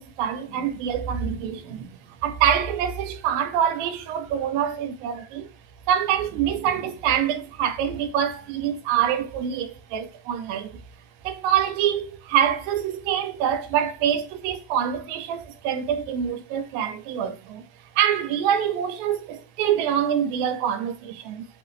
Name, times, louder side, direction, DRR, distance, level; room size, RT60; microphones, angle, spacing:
voice 1, 0.0-5.5 5.9-10.8 11.2-21.5, right 9 dB, 85° right, 2.5 m, -25 dB
6.2 x 2.9 x 2.5 m
omnidirectional pair, 4.0 m